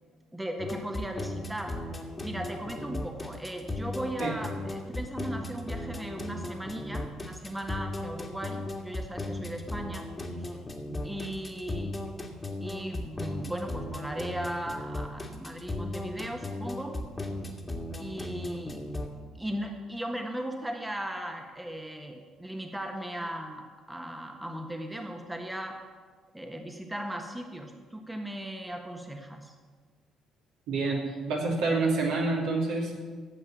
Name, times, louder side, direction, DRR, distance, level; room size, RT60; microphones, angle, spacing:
voice 1, 0.3-1.8 2.2-10.1 10.4-10.6 11.0-12.0 12.6-17.0 18.0-18.8 19.3-25.8 26.3-29.5, right 1 dB, 10° right, 3 dB, 1.6 m, -37 dB
sound 1, 0.6-19.1, left 1 dB, 25° left, 2.0 m, -36 dB
voice 2, 30.7-32.9, right 3 dB, 65° right, -2 dB, 2.7 m, -28 dB
13.5 x 8.4 x 7.3 m, 1.5 s
figure-of-eight pair, 45°, 0 cm